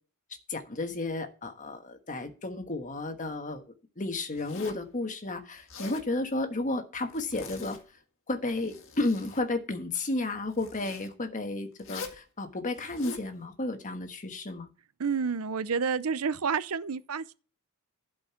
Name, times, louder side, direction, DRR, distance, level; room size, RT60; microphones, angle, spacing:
voice 1, 0.5-3.6 4.0-7.8 8.3-14.7, left 2 dB, 35° left, 1.4 m, -32 dB
Zipper (clothing), 4.3-4.9 5.5-6.1 7.1-7.8 8.4-9.4 10.5-11.1 11.8-12.2 12.7-13.3, left 4 dB, 60° left, 1.8 m, -44 dB
voice 2, 15.0-17.3, right 5 dB, 85° right, 0.6 m, -29 dB
12.0 x 5.2 x 5.8 m
head